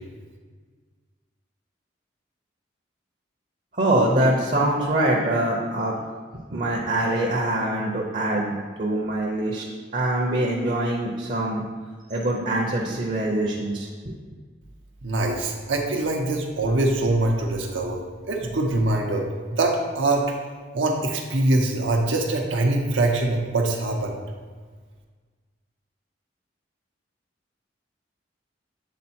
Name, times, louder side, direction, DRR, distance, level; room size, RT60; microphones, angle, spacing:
voice 1, 3.7-5.9 6.5-9.6 9.9-11.6 12.1-14.1, right 1 dB, 40° right, -2 dB, 0.7 m, -24 dB
voice 2, 15.0-18.0 18.3-19.2 19.5-20.4 20.7-24.2, right 2 dB, 85° right, 0 dB, 0.7 m, -23 dB
7.3 x 3.8 x 4.3 m, 1.5 s
head